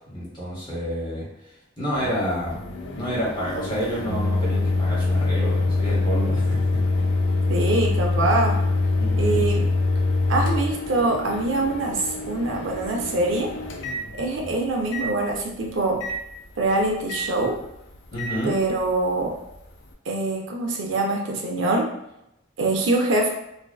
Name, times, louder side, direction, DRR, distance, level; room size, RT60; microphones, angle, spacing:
voice 1, 0.1-1.3 1.8-2.6 2.9-6.8 9.0-9.5 18.1-18.6, equal, 25° left, -7 dB, 1.0 m, -29 dB
Microwave oven, 1.9-14.5 14.9-15.1 16.0-16.2 17.1-17.3 18.2-18.3, left 3 dB, 60° left, 0.4 m, -25 dB
voice 2, 7.5-8.6 9.1-9.7 10.3-13.5 14.2-16.0 16.6-17.6 18.4-19.4 20.1-21.9 22.6-23.3, right 2 dB, 70° right, 1 dB, 0.4 m, -24 dB
2.5 x 2.3 x 2.2 m, 0.83 s
head